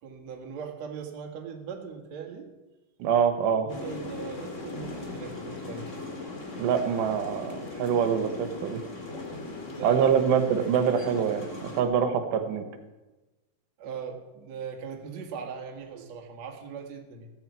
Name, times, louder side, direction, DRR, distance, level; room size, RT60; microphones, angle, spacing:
voice 1, 0.0-2.5 3.5-5.9 9.6-10.2 13.8-17.3, right 6 dB, 50° right, 2 dB, 2.5 m, -39 dB
voice 2, 3.0-3.7 6.6-8.8 9.8-12.6, right 7 dB, 85° right, 7 dB, 3.4 m, -25 dB
sound 1, 3.7-11.8, left 3 dB, 35° left, 1.2 m, -39 dB
15.5 x 15.0 x 4.6 m, 1.1 s
omnidirectional pair, 4.9 m